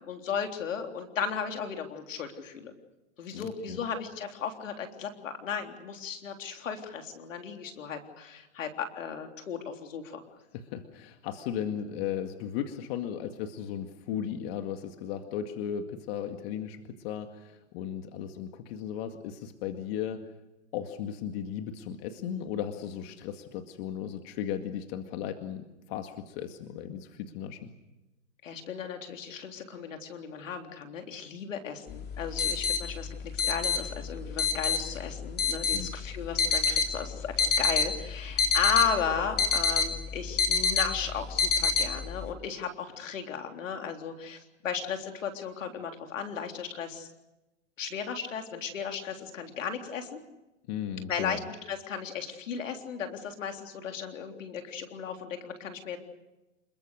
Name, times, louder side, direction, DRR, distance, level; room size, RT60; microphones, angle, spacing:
voice 1, 0.0-2.7 3.2-10.2 28.4-33.1 33.3-47.1 47.8-50.2 51.1-51.4 51.7-56.0, left 7 dB, 80° left, 4 dB, 3.7 m, -35 dB
voice 2, 3.3-3.8 10.5-20.3 20.7-27.7 35.7-35.9 50.7-51.4, left 9 dB, 50° left, 6 dB, 2.1 m, -36 dB
sound 1, 31.9-42.3, left 5 dB, 25° left, 2.9 m, -28 dB
28.0 x 22.0 x 6.6 m, 1.0 s
hypercardioid pair, 120°, 38 cm